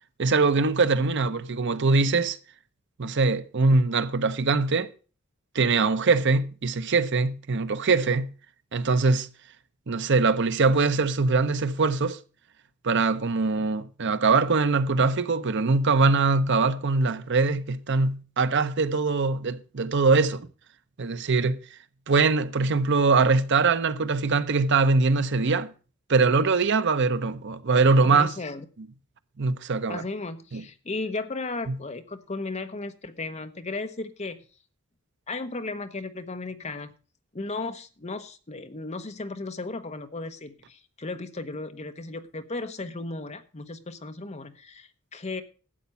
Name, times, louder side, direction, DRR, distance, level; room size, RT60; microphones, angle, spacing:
voice 1, 0.2-2.4 3.0-4.9 5.5-8.3 8.7-9.3 9.9-12.2 12.8-20.5 21.0-21.6 22.1-25.7 26.1-28.3 29.4-30.0 30.5-30.6 31.7-31.8, right 4 dB, 60° right, 0.8 m, -22 dB
voice 2, 28.0-28.6 29.9-34.4 35.3-36.9 37.3-45.4, left 3 dB, 35° left, 1.0 m, -35 dB
12.5 x 8.3 x 5.6 m
head